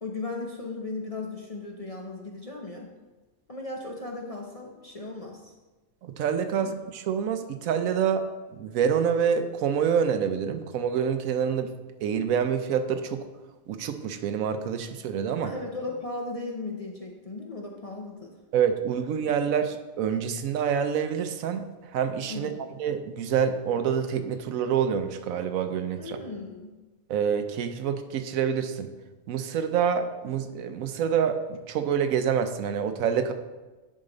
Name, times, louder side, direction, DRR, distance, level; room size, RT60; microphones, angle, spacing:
voice 1, 0.0-2.9 3.5-5.5 6.5-6.7 15.4-18.3 22.3-22.7 26.0-26.7, left 3 dB, 35° left, 0 dB, 0.6 m, -36 dB
voice 2, 6.1-8.2 8.6-11.7 12.0-13.2 13.7-15.5 18.5-21.7 21.9-22.5 22.8-26.2 27.1-28.9 29.3-33.3, right 7 dB, 80° right, 9 dB, 1.0 m, -27 dB
10.0 x 4.9 x 3.9 m, 1.2 s
omnidirectional pair, 1.4 m